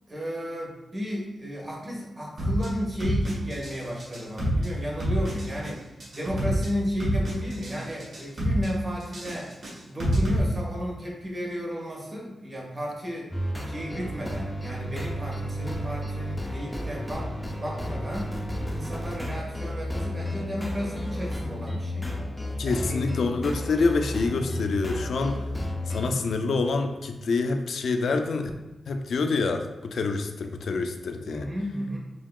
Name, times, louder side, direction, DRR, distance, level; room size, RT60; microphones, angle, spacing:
voice 1, 0.1-5.9 6.1-9.5 9.9-13.3 13.6-17.3 17.6-18.3 18.7-22.1 22.6-23.0 31.3-32.0, equal, 25° right, -3 dB, 1.1 m, -33 dB
sound 1, 2.4-2.7 3.0-3.7 4.0-4.7 5.0-5.7 6.0-6.7 7.0-7.7 8.0-8.7 9.0-10.4, equal, 55° right, 1.4 m, -27 dB
sound 2, 13.3-26.1, left 1 dB, 5° left, 0.5 m, -32 dB
voice 2, 22.6-25.5 25.9-28.5 28.9-31.5, left 3 dB, 65° left, 6 dB, 0.3 m, -27 dB
5.6 x 2.8 x 2.3 m, 1.0 s
wide cardioid pair, 150°, 0 cm